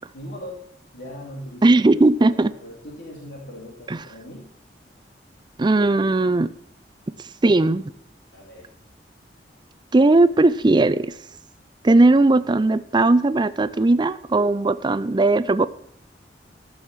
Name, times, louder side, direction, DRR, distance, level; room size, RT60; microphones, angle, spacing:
voice 1, 0.1-0.7 0.9-4.5 8.3-8.7, equal, 85° left, -2 dB, 2.8 m, -39 dB
voice 2, 1.6-2.5 3.9-4.0 5.6-6.5 7.4-7.9 9.9-11.1 11.8-15.7, right 2 dB, 25° right, 15 dB, 0.4 m, -18 dB
14.0 x 6.4 x 7.2 m, 0.67 s
head